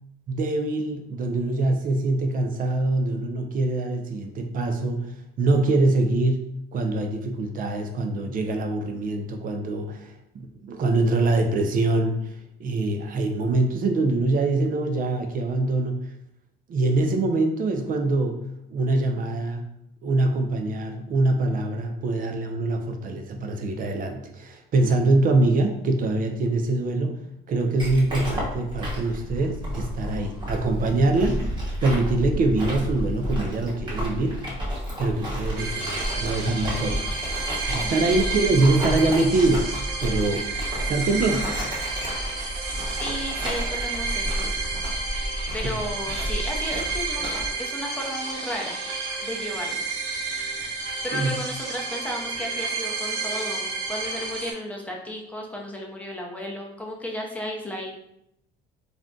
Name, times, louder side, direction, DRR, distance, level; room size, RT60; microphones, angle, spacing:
voice 1, 0.3-5.1 5.4-12.2 12.6-16.0 16.7-18.4 18.7-19.6 20.0-31.5 31.8-34.4 35.0-37.3 37.7-41.5 51.1-51.3, right 2 dB, 45° right, 4 dB, 0.5 m, -24 dB
sound 1, 27.8-47.5, equal, 25° right, 1.1 m, -31 dB
sound 2, 29.3-34.5, left 1 dB, 50° left, 0.4 m, -45 dB
sound 3, 35.6-54.5, right 3 dB, 85° right, 0.7 m, -31 dB
voice 2, 37.8-38.2 43.0-44.4 45.5-48.8 49.2-49.8 51.0-58.0, equal, 5° left, -1 dB, 0.7 m, -34 dB
2.5 x 2.2 x 3.6 m, 0.79 s
cardioid pair, 100°, 20 cm